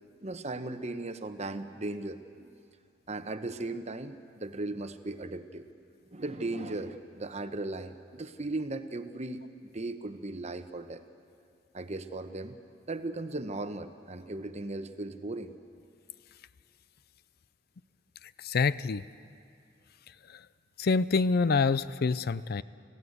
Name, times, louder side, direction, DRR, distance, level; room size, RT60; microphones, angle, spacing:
voice 1, 0.2-2.5 3.1-5.7 6.1-9.5 9.7-11.0 11.7-12.6 12.9-15.5, right 2 dB, 40° right, 9 dB, 1.0 m, -37 dB
voice 2, 18.4-19.0 20.8-22.6, left 4 dB, 55° left, 17 dB, 0.5 m, -26 dB
26.5 x 16.5 x 8.0 m, 2.4 s
head